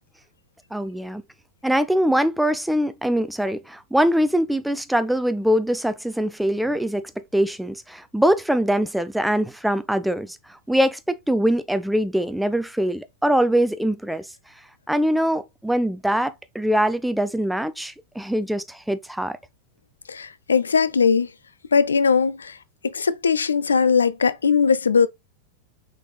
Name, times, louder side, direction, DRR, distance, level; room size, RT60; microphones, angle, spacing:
voice 1, 0.7-1.2 1.6-10.4 10.7-14.3 14.9-19.4, equal, ahead, 0.5 m, -23 dB
voice 2, 20.1-21.3 21.7-22.6 22.8-25.1, left 5 dB, 70° left, 0.4 m, -19 dB
6.0 x 3.9 x 2.2 m
figure-of-eight pair, 90°, 0 cm